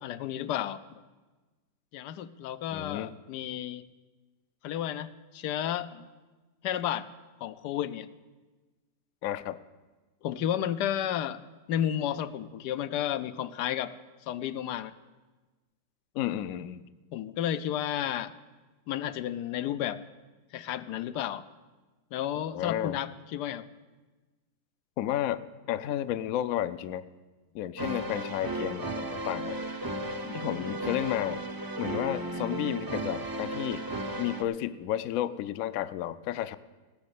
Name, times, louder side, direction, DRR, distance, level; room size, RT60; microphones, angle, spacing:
voice 1, 0.0-0.8 1.9-3.8 4.6-6.1 6.6-7.1 7.4-8.1 10.2-11.4 11.7-13.9 14.2-14.9 17.1-18.3 18.9-20.0 20.5-21.4 22.1-23.7 30.2-30.8, left 11 dB, 85° left, 14 dB, 1.2 m, -32 dB
voice 2, 2.7-3.1 9.2-9.6 16.1-16.8 22.5-23.0 25.0-25.4 25.7-27.0 27.5-29.6 30.3-31.4 31.8-33.9 34.2-36.6, left 12 dB, 70° left, 14 dB, 0.9 m, -32 dB
sound 1, 27.8-34.4, right 1 dB, 30° right, 0.4 m, -35 dB
16.5 x 6.3 x 8.3 m, 1.2 s
omnidirectional pair, 1.8 m